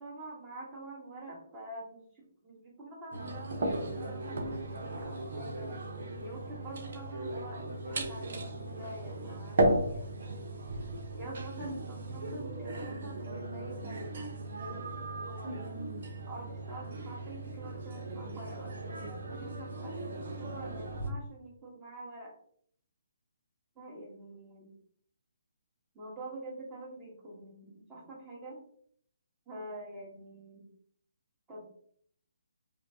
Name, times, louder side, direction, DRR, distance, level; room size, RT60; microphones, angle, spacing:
voice 1, 0.0-5.7 6.2-10.4 11.1-14.8 15.1-15.7 16.3-18.7 19.1-22.4 23.8-24.7 25.9-28.6 29.5-30.7 31.5-31.6, right 1 dB, 15° right, -5 dB, 1.5 m, -46 dB
sound 1, 3.1-21.1, right 2 dB, 60° right, 0.9 m, -36 dB
5.1 x 2.3 x 2.8 m, 0.62 s
figure-of-eight pair, 145°, 0 cm